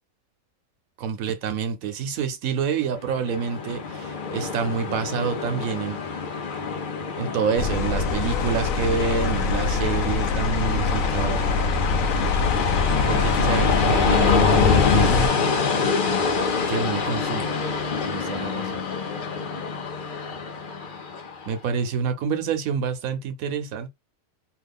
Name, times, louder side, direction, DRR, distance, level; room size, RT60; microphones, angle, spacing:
voice 1, 1.0-6.0 7.2-11.4 13.1-15.1 16.7-17.5 18.0-18.8 21.5-23.9, right 6 dB, 85° right, 1.2 m, -27 dB
Train, 2.9-21.6, left 5 dB, 50° left, 0.7 m, -26 dB
sound 1, 7.6-15.3, left 4 dB, 75° left, 1.0 m, -24 dB
3.0 x 2.4 x 3.5 m
omnidirectional pair, 1.4 m